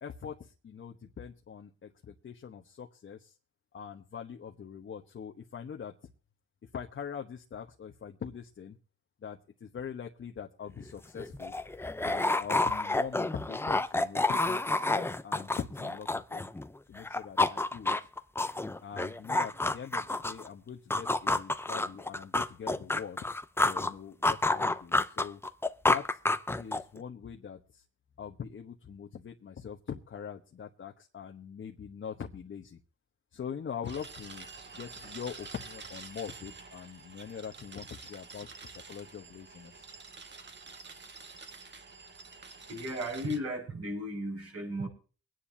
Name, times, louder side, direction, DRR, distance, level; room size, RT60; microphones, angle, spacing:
voice 1, 0.0-3.3 3.7-5.9 6.7-8.8 9.2-11.5 12.0-16.4 16.9-18.0 18.8-23.2 23.6-25.4 25.9-26.2 26.6-27.8 28.2-32.8 33.3-34.5 34.7-39.8, left 7 dB, 40° left, 3 dB, 1.1 m, -43 dB
sound 1, 10.8-10.9 11.2-16.7 17.0-20.5 20.9-23.9 24.2-27.0, left 2 dB, 10° left, 0.6 m, -29 dB
sound 2, 33.8-43.4, right 4 dB, 35° right, 1.7 m, -48 dB
voice 2, 42.7-44.9, equal, 55° right, 1 dB, 6.1 m, -35 dB
24.0 x 10.0 x 2.8 m, 0.37 s
cardioid pair, 90°, 30 cm